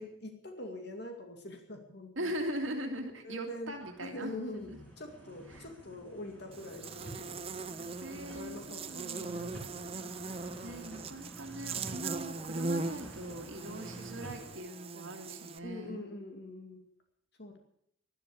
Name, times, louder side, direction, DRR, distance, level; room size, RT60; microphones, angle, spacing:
voice 1, 0.0-2.4 3.2-4.7 5.0-7.4 8.1-9.5 15.6-16.8 17.4-17.6, left 1 dB, 55° left, 4 dB, 2.2 m, -44 dB
voice 2, 2.2-4.8 5.5-5.6 7.2-7.3 8.0-10.0 10.4-16.0, right 1 dB, 75° right, 3 dB, 2.2 m, -41 dB
sound 1, 2.9-3.1 3.6-14.5, right 1 dB, 10° left, 4.4 m, -50 dB
Buzz, 6.5-15.6, right 3 dB, 30° right, 0.7 m, -40 dB
12.5 x 12.0 x 8.4 m, 0.73 s
head